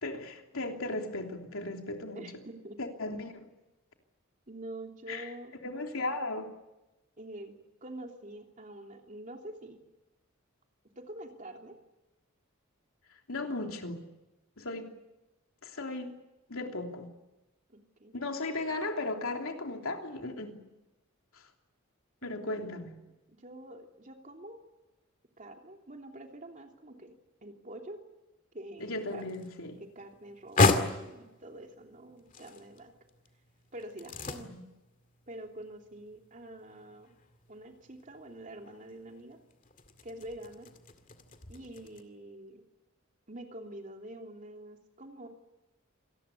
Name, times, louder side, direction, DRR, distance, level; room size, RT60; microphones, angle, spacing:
voice 1, 0.0-2.3 2.8-3.5 5.1-5.3 5.6-6.5 13.1-14.1 14.6-14.9 15.6-16.1 16.5-17.1 18.1-20.6 21.3-21.5 22.2-23.0 28.8-29.8 34.4-34.6, left 2 dB, 85° left, 3 dB, 3.2 m, -36 dB
voice 2, 2.1-2.8 4.5-5.5 7.2-9.8 11.0-11.8 14.9-15.0 17.7-18.2 22.2-22.9 23.3-24.6 25.4-27.1 27.4-28.0 28.5-29.3 29.8-32.9 33.7-34.5 35.3-37.1 37.5-39.4 40.0-40.7 41.5-42.6 43.3-45.3, right 1 dB, 40° right, 3 dB, 3.0 m, -46 dB
sound 1, 28.8-42.0, left 3 dB, 40° left, 2.1 m, -35 dB
27.0 x 19.0 x 8.5 m, 1.0 s
head